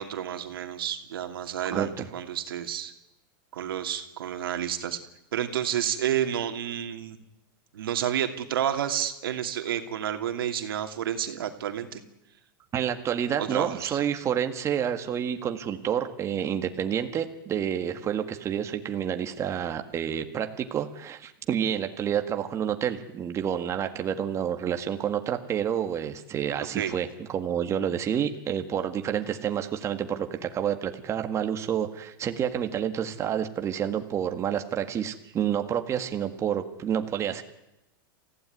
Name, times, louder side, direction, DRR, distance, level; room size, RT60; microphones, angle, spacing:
voice 1, 0.0-2.9 3.5-5.0 5.3-7.2 7.7-12.0 13.4-14.0 26.7-26.9, right 10 dB, 90° right, 6 dB, 2.7 m, -30 dB
voice 2, 1.7-2.0 12.7-37.4, right 9 dB, 25° right, 6 dB, 1.8 m, -29 dB
27.5 x 16.0 x 9.5 m, 0.93 s
supercardioid pair, 140°, 12 cm